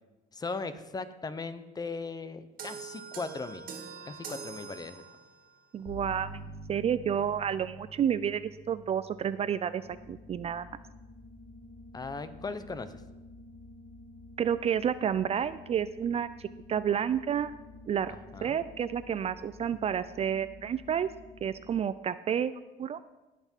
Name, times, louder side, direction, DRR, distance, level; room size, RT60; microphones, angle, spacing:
voice 1, 0.3-3.6 4.1-5.1 11.9-13.0 18.1-18.6, left 4 dB, 25° left, 12 dB, 0.8 m, -38 dB
sound 1, 2.6-5.5, right 6 dB, 55° right, 2.1 m, -43 dB
voice 2, 5.7-10.7 14.4-17.5 17.9-18.2 18.4-21.1 21.4-23.0, right 8 dB, 40° right, 15 dB, 0.4 m, -30 dB
sound 2, 5.9-13.6, right 1 dB, 45° left, 4.1 m, -49 dB
sound 3, 9.8-21.8, left 2 dB, 65° left, 2.5 m, -51 dB
17.5 x 6.0 x 4.5 m, 1.1 s
cardioid pair, 110°, 17 cm